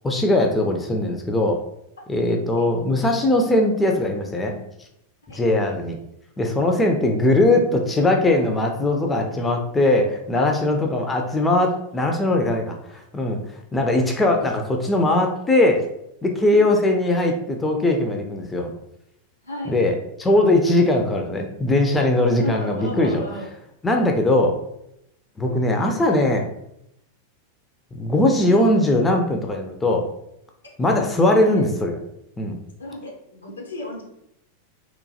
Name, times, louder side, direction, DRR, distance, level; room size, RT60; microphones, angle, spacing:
voice 1, 0.0-1.6 2.1-4.6 5.3-6.0 6.4-15.8 16.2-18.7 19.7-23.2 23.8-24.6 25.4-26.5 27.9-30.1 30.8-32.0 32.4-32.6, left 1 dB, 15° left, 2 dB, 0.4 m, -20 dB
voice 2, 19.4-19.7 22.4-23.5 31.3-31.5 32.8-34.0, left 1 dB, 75° left, 0 dB, 0.7 m, -33 dB
3.0 x 2.1 x 2.7 m, 0.79 s
figure-of-eight pair, 90°, 0 cm